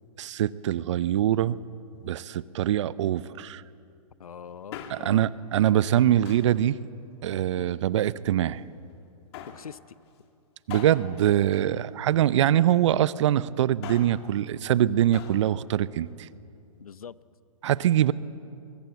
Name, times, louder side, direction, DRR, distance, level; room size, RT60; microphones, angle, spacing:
voice 1, 0.2-1.6 2.0-3.6 4.9-6.8 7.2-8.7 10.7-16.3 17.6-18.1, right 11 dB, 55° right, 18 dB, 0.7 m, -23 dB
voice 2, 4.2-5.3 9.5-10.0 11.7-11.8 16.8-17.1, left 7 dB, 80° left, 18 dB, 0.8 m, -43 dB
Male speech man speaking, 4.5-5.3 6.2-6.6 7.4-8.2 9.3-9.7 10.7-12.4 13.6-14.3 15.1-15.5 15.7-15.8, left 8 dB, 45° left, 2.5 m, -43 dB
23.0 x 22.5 x 8.0 m, 2.5 s
hypercardioid pair, 120°, 18 cm